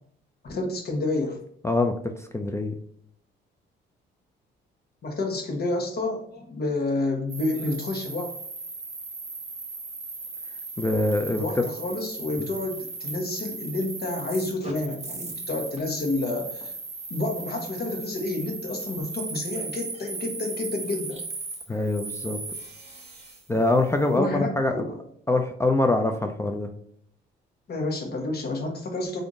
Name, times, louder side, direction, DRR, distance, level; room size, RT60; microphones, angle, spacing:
voice 1, 0.4-1.4 5.0-8.3 11.4-16.7 17.1-21.2 24.1-25.0 27.7-29.2, left 2 dB, 55° left, 1 dB, 1.0 m, -29 dB
voice 2, 1.6-2.7 10.8-11.4 21.7-22.4 23.5-24.8 25.3-26.7, left 2 dB, 15° left, 5 dB, 0.3 m, -24 dB
sound 1, 7.3-23.4, right 3 dB, 35° right, 0.9 m, -37 dB
3.5 x 2.6 x 3.8 m, 0.66 s
cardioid pair, 90°, 20 cm